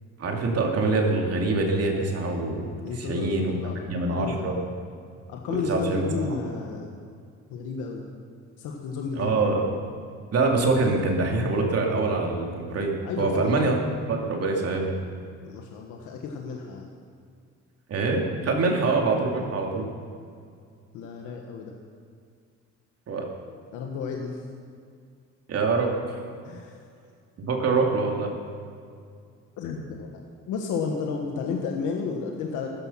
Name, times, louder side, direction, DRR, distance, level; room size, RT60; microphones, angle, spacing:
voice 1, 0.2-2.7 3.0-3.5 3.9-4.6 5.5-6.0 9.2-9.7 10.3-13.7 14.1-14.9 17.9-19.9 23.1-23.3 25.5-26.2 27.4-28.3, right 3 dB, 55° right, 1 dB, 2.8 m, -24 dB
voice 2, 2.8-3.8 4.1-4.6 5.3-7.0 7.5-8.0 8.6-9.4 13.0-13.6 15.4-16.9 19.3-19.4 20.9-21.7 23.7-24.4 26.4-26.8 29.6-32.7, left 5 dB, 90° left, 1 dB, 1.5 m, -32 dB
14.0 x 13.5 x 5.8 m, 2.3 s
cardioid pair, 105°, 30 cm